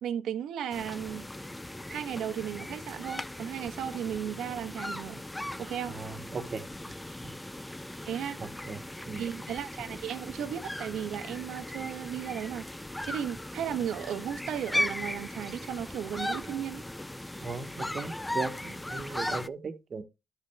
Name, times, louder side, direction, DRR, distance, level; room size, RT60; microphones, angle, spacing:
voice 1, 0.0-1.3 1.9-5.2 5.6-6.0 8.1-8.4 9.2-12.7 13.0-16.8, right 9 dB, 70° right, 1.2 m, -35 dB
sound 1, 0.7-19.5, left 1 dB, 10° left, 0.4 m, -38 dB
voice 2, 5.9-6.7 8.4-8.8 9.1-9.2 17.4-20.0, right 4 dB, 40° right, 1.4 m, -37 dB
12.5 x 5.5 x 3.5 m
cardioid pair, 105°, 0 cm